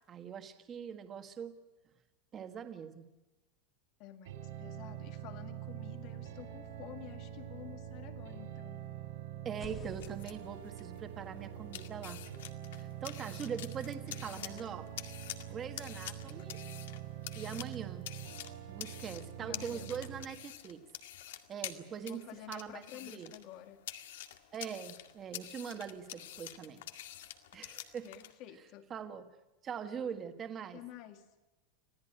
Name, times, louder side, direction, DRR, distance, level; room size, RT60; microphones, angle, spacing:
voice 1, 0.1-1.6 2.3-3.0 9.4-12.2 12.7-14.9 15.5-16.6 17.3-18.1 18.7-20.8 21.5-23.3 24.5-26.8 27.5-28.1 28.9-29.3 29.6-30.8, right 7 dB, 20° right, 8 dB, 1.5 m, -42 dB
voice 2, 4.0-8.9 14.0-14.7 19.4-19.9 22.0-23.8 28.0-28.9 30.7-31.3, left 12 dB, 35° left, 8 dB, 2.0 m, -51 dB
sound 1, 4.3-20.2, right 11 dB, 80° right, 5.2 m, -45 dB
sound 2, 9.4-13.3, left 4 dB, 15° left, 1.9 m, -57 dB
sound 3, 9.8-28.3, left 12 dB, 80° left, 2.0 m, -48 dB
26.0 x 16.5 x 10.0 m, 1.1 s
supercardioid pair, 180°, 0 cm